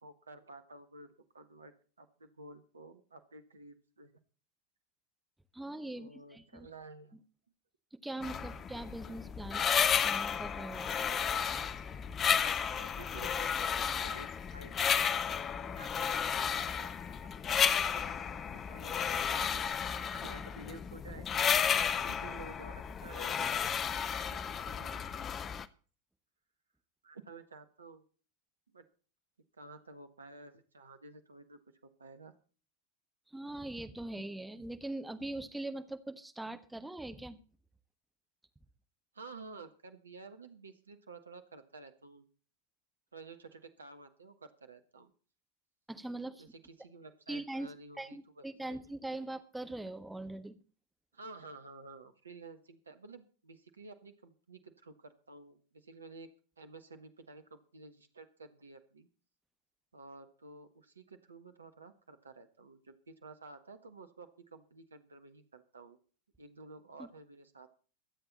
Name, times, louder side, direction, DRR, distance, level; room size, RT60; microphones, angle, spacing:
voice 1, 0.0-1.7 2.0-4.1 5.9-7.2 8.1-8.2 12.5-15.1 15.7-16.2 16.5-17.0 17.9-21.3 22.0-23.6 23.9-25.0 27.0-28.0 28.7-28.8 29.6-32.3 39.1-42.2 43.1-45.1 46.4-48.8 51.1-56.3 56.6-59.1 59.9-66.0 66.4-67.7, right 3 dB, 75° right, 8 dB, 1.5 m, -52 dB
voice 2, 5.5-6.7 8.0-11.0 33.3-37.4 45.9-46.4 47.3-50.6 67.0-67.1, right 2 dB, 5° right, 7 dB, 1.3 m, -42 dB
sound 1, 8.2-25.7, left 7 dB, 25° left, 0.7 m, -33 dB
23.0 x 8.0 x 4.1 m, 0.39 s
figure-of-eight pair, 90°, 0 cm